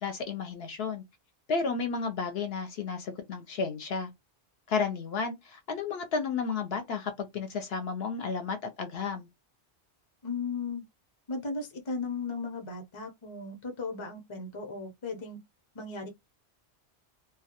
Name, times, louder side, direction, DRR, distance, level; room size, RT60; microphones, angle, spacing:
voice 1, 0.0-1.0 1.5-4.1 4.7-9.3, left 5 dB, 70° left, 0.8 m, -32 dB
voice 2, 10.2-10.8 11.3-15.4 15.7-16.1, left 4 dB, 30° left, 0.6 m, -36 dB
2.2 x 2.2 x 2.8 m
omnidirectional pair, 1.2 m